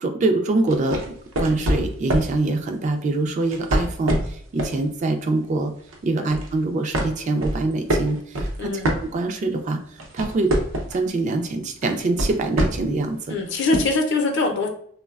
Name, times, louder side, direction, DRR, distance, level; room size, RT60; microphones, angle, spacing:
voice 1, 0.0-5.7 6.0-8.7 9.1-9.8 10.1-10.5 10.9-13.4, right 2 dB, 35° right, 6 dB, 0.3 m, -24 dB
sound 1, 0.7-2.4 3.4-4.8 5.2-5.5 5.9-6.5 6.9-9.5 9.9-11.1 11.8-13.0 13.7-13.8, right 1 dB, 80° right, 0.6 m, -25 dB
voice 2, 8.6-8.9 13.3-14.7, left 3 dB, 60° left, 4 dB, 0.5 m, -23 dB
3.1 x 2.1 x 2.3 m, 0.62 s
head